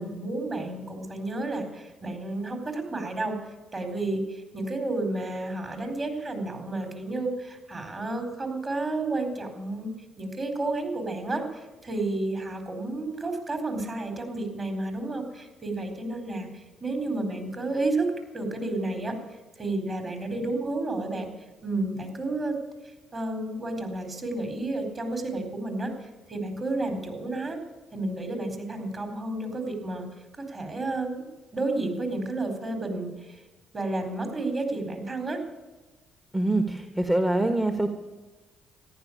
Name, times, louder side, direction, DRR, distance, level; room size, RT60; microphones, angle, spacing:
voice 1, 0.0-3.4 3.7-9.9 10.2-19.2 19.6-21.3 21.6-22.6 23.1-27.6 27.9-30.1 30.4-31.2 31.5-33.4 33.7-35.4, right 2 dB, 35° right, 5 dB, 4.2 m, -31 dB
voice 2, 36.3-37.9, right 2 dB, 15° right, 6 dB, 1.5 m, -24 dB
14.5 x 11.0 x 8.6 m, 1.2 s
supercardioid pair, 55°, 0 cm